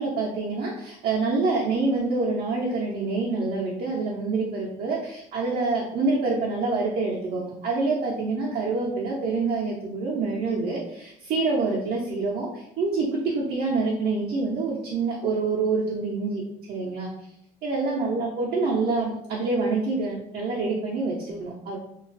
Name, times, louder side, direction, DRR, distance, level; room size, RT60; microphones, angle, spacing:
voice 1, 0.0-16.4 16.7-17.1 17.6-21.8, right 3 dB, 65° right, -4 dB, 0.5 m, -26 dB
2.3 x 2.2 x 2.5 m, 0.78 s
cardioid pair, 110°, 17 cm